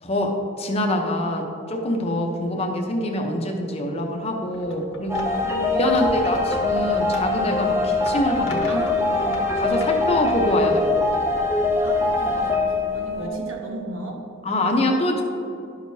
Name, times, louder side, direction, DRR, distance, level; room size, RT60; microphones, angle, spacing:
voice 1, 0.0-5.3 5.8-11.0 13.2-13.4 14.4-15.2, left 1 dB, 30° left, 2 dB, 0.7 m, -25 dB
voice 2, 2.1-2.4 5.4-6.0 8.7-9.0 11.8-14.2, right 1 dB, 80° right, 0 dB, 1.3 m, -36 dB
sound 1, 4.5-5.5 5.8-10.6, left 2 dB, 85° left, 1.1 m, -41 dB
sound 2, 5.1-13.3, left 2 dB, 15° right, 0.6 m, -23 dB
11.5 x 6.4 x 2.7 m, 2.7 s
head